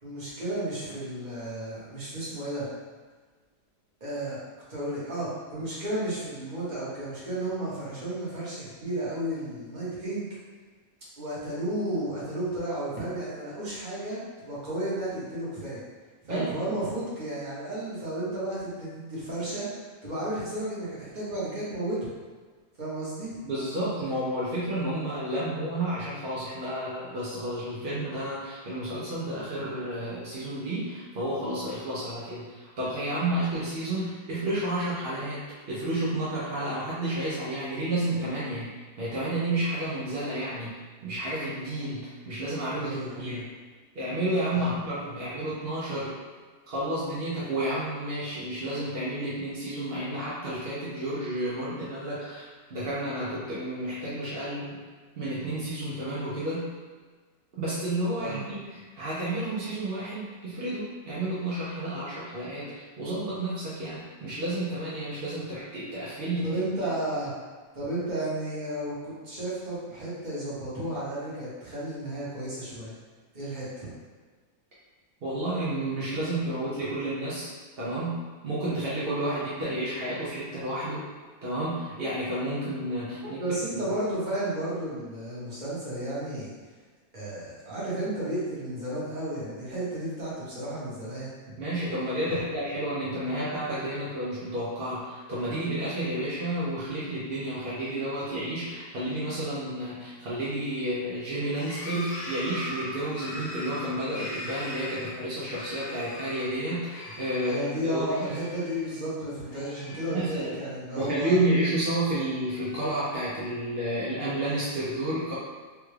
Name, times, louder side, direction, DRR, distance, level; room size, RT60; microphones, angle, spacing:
voice 1, 0.0-2.7 4.0-4.4 4.7-10.3 11.2-15.8 16.3-19.7 20.0-22.1 22.8-23.4 42.8-43.4 44.5-44.7 45.1-45.2 58.2-58.4 66.4-67.3 67.7-72.9 73.3-73.9 83.2-86.5 87.1-91.3 107.4-111.4, right 1 dB, 30° right, -8 dB, 1.0 m, -33 dB
voice 2, 23.4-38.7 39.0-43.4 43.9-46.2 46.7-54.8 55.2-56.7 57.5-66.5 75.2-81.1 81.4-83.4 83.7-83.8 91.6-108.3 110.1-110.5 111.0-115.3, right 1 dB, 65° right, -8 dB, 0.5 m, -31 dB
sound 1, 101.5-106.6 106.9-107.7 108.1-109.0 109.3-110.5 110.9-111.9 112.4-113.4, left 1 dB, 80° left, 0.5 m, -41 dB
3.4 x 2.3 x 3.2 m, 1.4 s
omnidirectional pair, 1.8 m